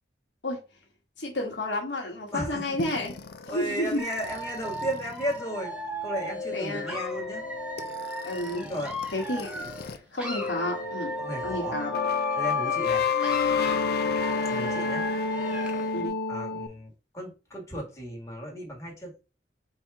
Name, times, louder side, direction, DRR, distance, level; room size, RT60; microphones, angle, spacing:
voice 1, 1.2-3.2 3.5-4.0 6.5-7.0 8.2-8.6 9.1-9.7 9.9-11.1 11.4-11.9 12.6-12.7 15.9-16.1, left 1 dB, 80° left, 1.3 m, -31 dB
voice 2, 2.3-2.7 3.5-5.7 6.0-7.5 8.6-8.9 9.6-9.7 11.2-11.8 12.3-13.0 14.5-15.1 16.3-19.1, equal, 15° left, 1.5 m, -35 dB
sound 1, 2.8-10.0 10.2-16.7, left 5 dB, 60° left, 0.5 m, -31 dB
Dog / Alarm, 4.0-9.9 10.2-12.9 13.2-15.9, right 1 dB, 5° right, 1.0 m, -37 dB
3.9 x 2.9 x 4.7 m
head